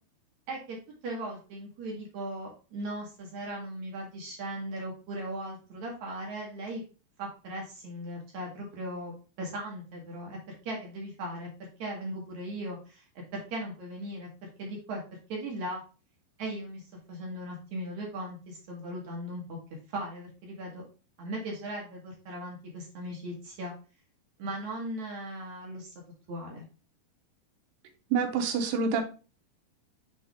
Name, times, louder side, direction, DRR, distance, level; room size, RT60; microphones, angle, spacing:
voice 1, 0.5-0.8 1.0-6.8 7.2-9.1 9.4-13.0 13.3-15.0 15.3-15.8 16.4-16.8 17.1-19.6 19.9-20.8 21.2-23.7 24.4-25.9 26.3-26.6, right 1 dB, 60° right, -2 dB, 2.6 m, -38 dB
voice 2, 28.1-29.0, right 5 dB, 80° right, 4 dB, 2.8 m, -27 dB
7.6 x 3.7 x 3.5 m, 0.34 s
omnidirectional pair, 4.2 m